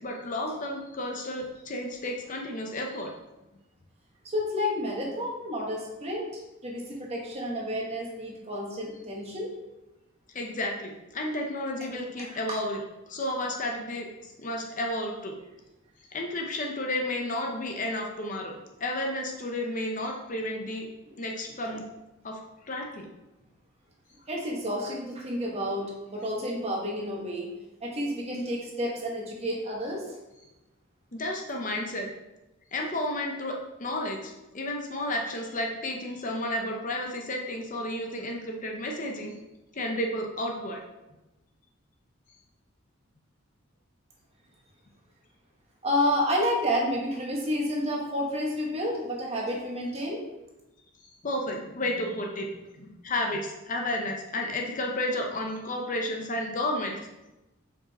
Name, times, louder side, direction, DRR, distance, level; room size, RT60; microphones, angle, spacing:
voice 1, 0.0-3.1 10.3-12.8 13.1-15.4 16.1-18.5 18.8-20.9 21.2-21.9 22.2-22.4 22.6-23.1 31.1-32.1 32.7-39.3 39.7-40.8 51.2-52.5 52.8-57.0, left 1 dB, 40° left, 2 dB, 0.8 m, -32 dB
voice 2, 4.2-6.3 6.6-9.5 12.2-12.6 21.7-21.8 24.3-27.5 27.8-30.2 45.8-50.2, equal, 30° right, -2 dB, 1.5 m, -30 dB
5.5 x 5.1 x 4.2 m, 1.0 s
head